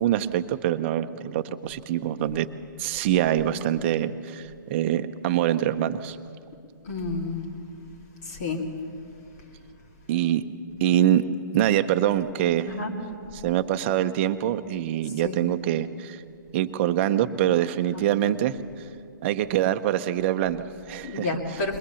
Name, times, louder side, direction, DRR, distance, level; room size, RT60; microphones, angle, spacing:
voice 1, 0.0-2.5 2.8-6.2 10.1-10.4 10.8-11.2 11.5-12.7 13.4-16.2 16.5-18.6 19.2-21.3, right 12 dB, 35° right, 10 dB, 0.8 m, -24 dB
voice 2, 6.8-7.5 8.2-8.6 12.6-12.9 15.2-15.4 17.9-18.0 21.0-21.8, left 3 dB, 55° left, -1 dB, 2.6 m, -30 dB
22.0 x 19.5 x 7.0 m, 2.4 s
hypercardioid pair, 150°, 11 cm